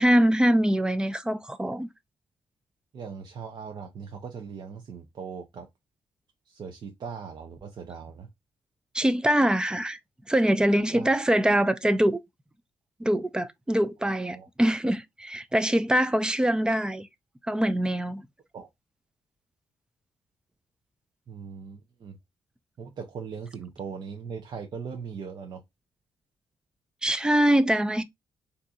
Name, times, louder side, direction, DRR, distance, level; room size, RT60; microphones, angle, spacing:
voice 1, 0.0-1.9 8.9-10.0 10.3-12.2 13.0-17.1 17.5-18.2 27.0-28.0, equal, 10° right, 0.3 m, -23 dB
voice 2, 2.9-5.7 6.5-8.3 10.9-11.1 14.3-14.5 18.5-18.7 21.3-22.2 22.8-25.6, right 6 dB, 45° right, 0.6 m, -39 dB
3.9 x 2.6 x 2.3 m
cardioid pair, 150°, 10 cm